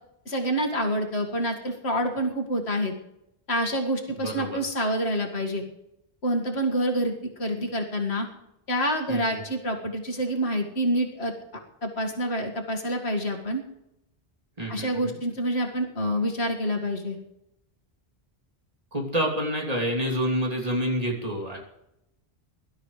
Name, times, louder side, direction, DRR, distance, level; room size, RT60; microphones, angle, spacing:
voice 1, 0.3-2.9 3.5-5.6 6.2-8.3 8.7-11.3 11.8-13.6 14.7-17.2, equal, 85° left, 2 dB, 2.3 m, -27 dB
voice 2, 4.1-4.6 9.1-9.4 14.6-15.2 18.9-21.6, equal, 35° right, -1 dB, 3.2 m, -28 dB
23.0 x 12.5 x 3.3 m, 0.84 s
omnidirectional pair, 1.1 m